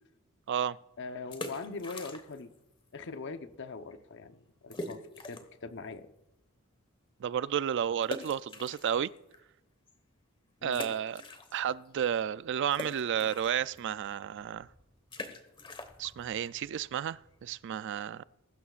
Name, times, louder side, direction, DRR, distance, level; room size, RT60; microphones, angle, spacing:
voice 1, 1.0-2.5 2.9-6.1 10.6-10.8, left 4 dB, 55° left, 0.9 m, -42 dB
sound 1, 1.3-2.6 2.8-2.9 3.5-3.6 3.9-4.0 4.7-5.6 6.1-6.2 8.0-9.4 9.9-10.0 10.7-11.9 12.1-17.6, left 2 dB, 25° left, 1.3 m, -44 dB
voice 2, 7.2-9.1 10.6-11.2 11.5-14.7 16.0-18.2, right 9 dB, 55° right, 0.3 m, -32 dB
21.5 x 12.5 x 2.4 m
head